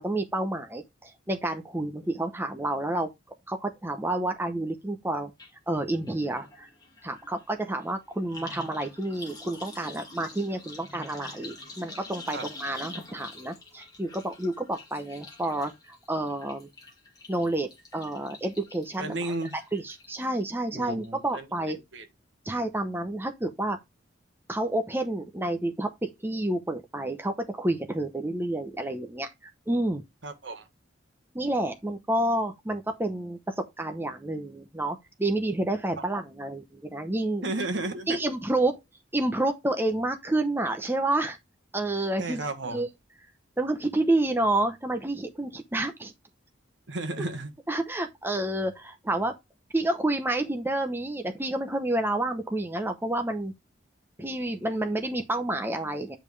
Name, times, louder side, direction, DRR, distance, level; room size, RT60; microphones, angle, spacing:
voice 1, 0.0-3.1 3.5-5.3 5.7-6.7 7.0-16.7 17.3-21.8 22.5-23.8 24.5-29.3 29.7-30.0 31.3-37.4 38.1-38.8 39.1-41.4 41.7-42.9 43.6-46.1 47.7-49.3 49.7-53.5 54.2-56.2, right 1 dB, 10° right, 0.8 m, -29 dB
sound 1, 5.4-5.5 5.8-20.4 20.8-21.3 21.6-21.7, left 3 dB, 20° left, 2.2 m, -46 dB
voice 2, 19.0-19.5 20.7-22.1 30.2-30.7 37.4-38.2 42.2-42.8 46.9-47.5, right 2 dB, 65° right, 1.4 m, -33 dB
8.9 x 5.3 x 3.3 m
head